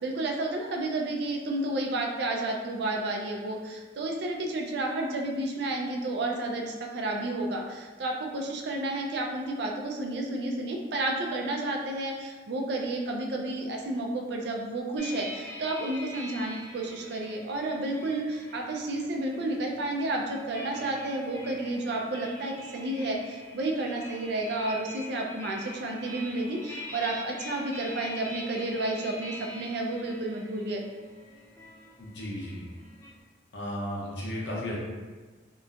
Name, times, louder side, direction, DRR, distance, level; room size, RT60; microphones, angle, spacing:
voice 1, 0.0-30.8, right 2 dB, 65° right, 1 dB, 0.4 m, -31 dB
sound 1, 15.0-33.2, left 1 dB, 15° left, 0.5 m, -44 dB
voice 2, 32.0-32.6 33.5-34.8, left 1 dB, 70° left, -4 dB, 0.7 m, -34 dB
3.0 x 2.1 x 2.4 m, 1.3 s
head